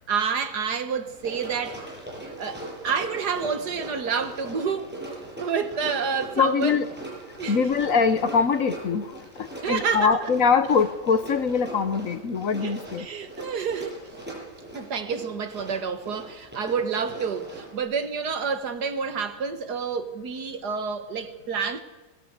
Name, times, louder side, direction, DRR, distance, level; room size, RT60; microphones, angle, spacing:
voice 1, 0.1-1.8 2.2-5.2 5.4-6.8 7.4-7.7 9.6-10.3 12.6-14.0 14.7-21.8, right 6 dB, 75° right, 2.0 m, -29 dB
Run, 1.1-17.8, right 1 dB, 5° right, 7.9 m, -40 dB
voice 2, 6.4-6.9 7.5-9.1 9.4-13.1, left 5 dB, 55° left, 1.3 m, -23 dB
22.0 x 21.0 x 8.1 m
omnidirectional pair, 1.8 m